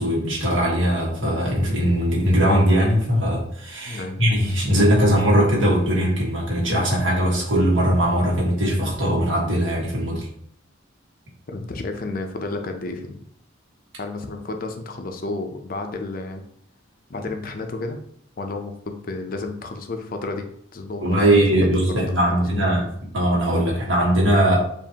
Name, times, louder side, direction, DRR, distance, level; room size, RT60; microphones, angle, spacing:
voice 1, 0.0-10.3 21.0-22.9 23.1-24.6, equal, 65° right, -3 dB, 1.5 m, -20 dB
voice 2, 3.9-4.2 11.5-13.1 14.0-16.4 17.1-18.0 18.4-21.4 21.9-22.0 22.3-22.8, left 3 dB, 45° left, 5 dB, 0.5 m, -31 dB
7.1 x 2.5 x 2.8 m, 0.68 s
head